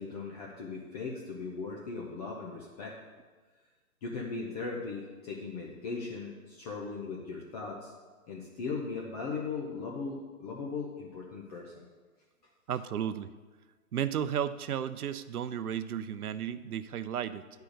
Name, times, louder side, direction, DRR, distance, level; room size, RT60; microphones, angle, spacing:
voice 1, 0.0-2.9 4.0-7.9 8.3-11.9, left 4 dB, 25° left, -2 dB, 0.8 m, -38 dB
voice 2, 12.7-13.3 13.9-17.4, right 9 dB, 90° right, 13 dB, 0.7 m, -33 dB
9.9 x 4.6 x 6.5 m, 1.4 s
hypercardioid pair, 150°, 44 cm